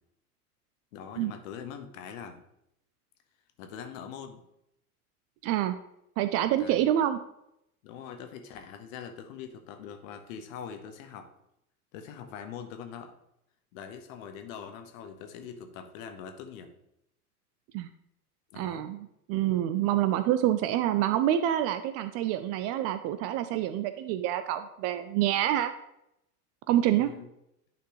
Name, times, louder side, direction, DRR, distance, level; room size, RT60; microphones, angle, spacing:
voice 1, 0.9-2.4 3.6-4.4 6.6-6.8 7.8-11.3 11.9-13.1 13.7-16.7 18.5-18.9 27.0-27.3, left 7 dB, 55° left, 6 dB, 1.2 m, -43 dB
voice 2, 5.4-5.8 6.2-7.2 17.7-17.9 18.6-25.7 26.7-27.1, right 12 dB, 35° right, 10 dB, 0.4 m, -27 dB
10.5 x 4.4 x 3.0 m, 0.80 s
figure-of-eight pair, 85°, 46 cm